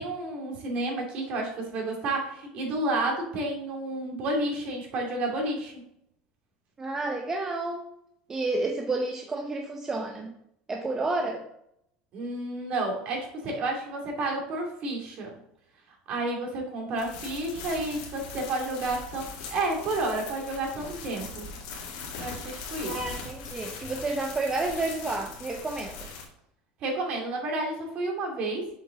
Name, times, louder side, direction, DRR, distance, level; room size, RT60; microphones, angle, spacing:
voice 1, 0.0-5.7 12.1-15.4 16.1-21.5 22.2-22.9 26.8-28.7, right 2 dB, 45° right, 0 dB, 2.4 m, -31 dB
voice 2, 6.8-7.9 8.3-10.3 10.7-11.5 22.8-26.1, right 2 dB, 20° right, 2 dB, 0.7 m, -30 dB
sound 1, 17.0-26.3, left 4 dB, 75° left, 2.3 m, -40 dB
7.0 x 5.2 x 3.8 m, 0.75 s
supercardioid pair, 140°, 3 cm